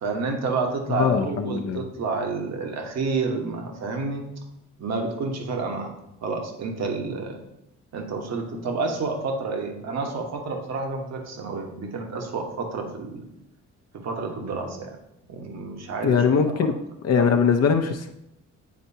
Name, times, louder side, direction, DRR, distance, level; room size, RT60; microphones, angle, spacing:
voice 1, 0.0-4.2 4.8-5.9 6.2-7.4 7.9-13.2 14.0-15.0 15.3-16.6, right 4 dB, 60° right, 3 dB, 1.3 m, -29 dB
voice 2, 0.9-1.8 16.0-16.8 17.0-18.1, left 6 dB, 55° left, 5 dB, 0.7 m, -21 dB
9.2 x 4.4 x 2.8 m, 0.80 s
cardioid pair, 90°, 30 cm